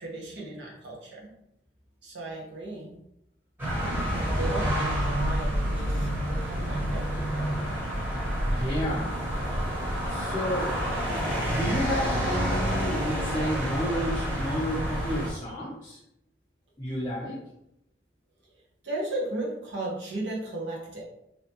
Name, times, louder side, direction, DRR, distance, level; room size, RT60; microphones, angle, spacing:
voice 1, 0.0-1.3 2.0-3.0 3.8-7.5 9.8-10.2 18.8-21.0, right 2 dB, 70° right, -3 dB, 1.0 m, -36 dB
sound 1, 3.6-15.3, equal, 10° right, 0.9 m, -28 dB
voice 2, 8.5-9.1 10.0-10.8 11.1-16.0 16.8-17.4, equal, 15° left, -8 dB, 0.6 m, -31 dB
3.3 x 2.9 x 2.9 m, 0.80 s
head